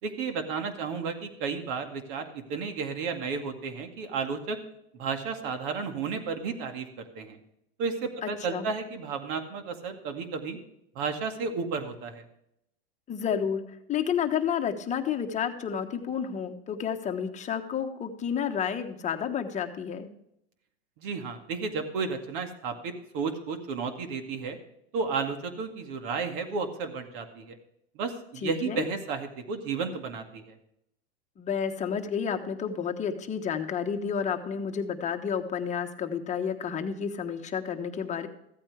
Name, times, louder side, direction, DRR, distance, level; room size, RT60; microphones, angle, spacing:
voice 1, 0.0-4.6 4.9-7.4 7.8-10.6 11.0-12.2 21.0-24.6 24.9-27.6 27.9-30.6, right 5 dB, 55° right, 6 dB, 2.1 m, -33 dB
voice 2, 8.2-8.7 13.1-13.6 13.9-20.1 28.4-28.8 31.4-38.3, left 7 dB, 20° left, 6 dB, 1.2 m, -30 dB
14.5 x 8.7 x 3.3 m, 0.77 s
supercardioid pair, 125°, 31 cm